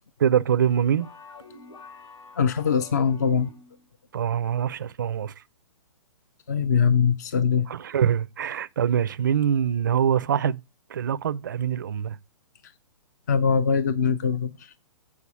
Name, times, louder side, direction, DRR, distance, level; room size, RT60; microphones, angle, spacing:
voice 1, 0.2-1.1 4.1-5.3 7.7-10.6 10.9-12.2, right 8 dB, 35° right, 0.4 m, -24 dB
sound 1, 1.0-3.9, left 4 dB, 55° left, 4.5 m, -47 dB
voice 2, 2.4-3.5 6.5-7.7 13.3-14.5, left 6 dB, 30° left, 0.4 m, -22 dB
8.4 x 4.8 x 5.9 m
hypercardioid pair, 180°, 18 cm